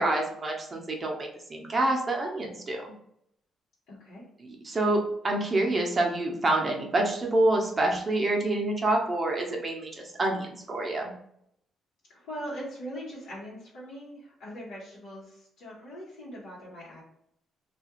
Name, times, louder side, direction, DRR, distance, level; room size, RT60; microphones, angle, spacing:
voice 1, 0.0-2.8 4.4-11.1, right 2 dB, 35° right, 0 dB, 0.7 m, -27 dB
voice 2, 3.9-4.2 12.1-17.0, equal, 85° left, -8 dB, 1.0 m, -41 dB
2.4 x 2.3 x 2.9 m, 0.73 s
cardioid pair, 90°, 0 cm